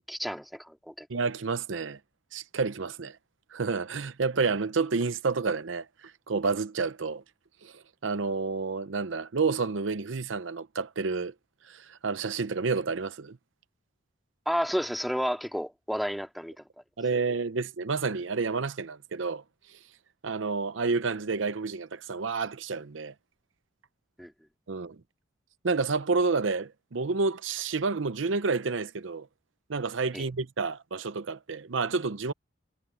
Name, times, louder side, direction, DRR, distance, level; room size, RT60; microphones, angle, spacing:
voice 1, 0.1-1.1 14.5-16.6 24.2-24.3 30.1-30.3, equal, ahead, 2.1 m, -31 dB
voice 2, 1.1-2.0 2.3-3.2 3.5-7.2 7.6-11.3 11.7-13.4 17.0-19.4 19.7-19.8 20.2-23.1 24.7-25.0 25.6-29.3 29.7-32.3, right 4 dB, 80° right, 0.7 m, -30 dB
head